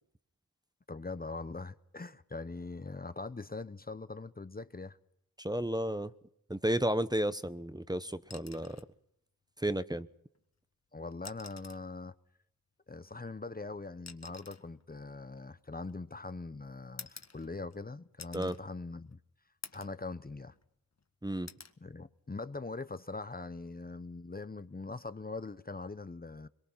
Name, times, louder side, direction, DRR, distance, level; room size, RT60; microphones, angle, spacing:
voice 1, 0.9-5.0 10.9-12.1 12.9-19.2 19.7-20.5 21.8-26.5, left 3 dB, 25° left, 1.0 m, -42 dB
voice 2, 5.4-6.1 6.5-8.8 9.6-10.1 18.3-18.6 21.2-21.5, right 1 dB, 10° right, 1.0 m, -32 dB
sound 1, 8.2-8.9 10.4-10.5 11.1-11.9 13.1-16.2 17.0-17.8 18.2-18.6 19.1-19.2 19.6-20.0 20.4-21.1 21.5-21.8 23.3-23.5, left 4 dB, 50° left, 1.7 m, -51 dB
24.5 x 22.5 x 5.7 m
cardioid pair, 60°, 34 cm